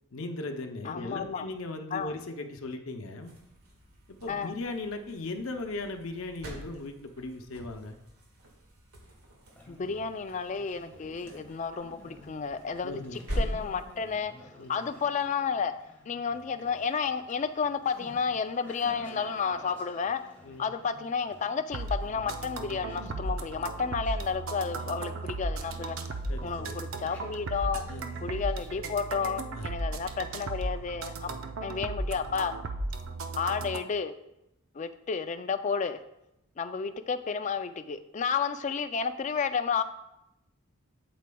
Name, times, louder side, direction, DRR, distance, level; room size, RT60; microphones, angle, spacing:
voice 1, 0.1-3.4 4.1-8.0 12.8-13.2 14.6-14.7 20.4-20.7 26.3-26.8 27.9-28.1 29.5-29.7 31.2-31.4, left 2 dB, 65° left, 5 dB, 0.7 m, -38 dB
voice 2, 0.8-1.5 1.9-2.1 4.3-4.5 9.7-14.3 14.7-15.7 16.1-20.2 20.6-26.0 26.4-27.8 28.2-31.3 31.6-32.5 33.4-34.1 34.7-36.0 36.6-39.8, left 5 dB, 30° left, 10 dB, 0.3 m, -31 dB
sound 1, 3.2-14.3, equal, 80° right, 1.7 m, -42 dB
Conversation, 9.4-29.1, left 1 dB, 10° left, 1.2 m, -53 dB
sound 2, 21.7-33.8, right 2 dB, 60° right, 0.5 m, -35 dB
8.3 x 7.8 x 2.3 m, 0.87 s
head